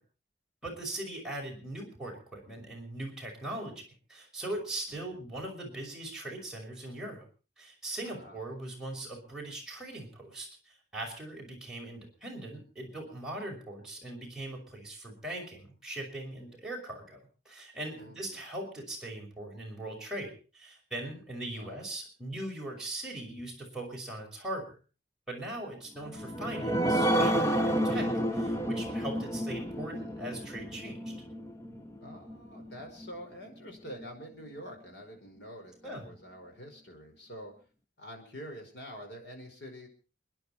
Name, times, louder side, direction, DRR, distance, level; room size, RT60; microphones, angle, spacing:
voice 1, 0.6-3.8 4.1-7.3 7.6-24.8 25.3-31.1 35.8-36.1, right 1 dB, 5° right, -3 dB, 5.8 m, -40 dB
voice 2, 4.9-5.2 8.0-8.4 17.9-18.4 21.6-21.9 32.0-37.5 38.0-39.9, equal, 70° left, 3 dB, 5.2 m, -46 dB
sound 1, 26.0-33.1 33.6-33.7 34.0-34.1, right 1 dB, 15° left, 1.2 m, -30 dB
29.0 x 10.5 x 4.4 m, 0.37 s
head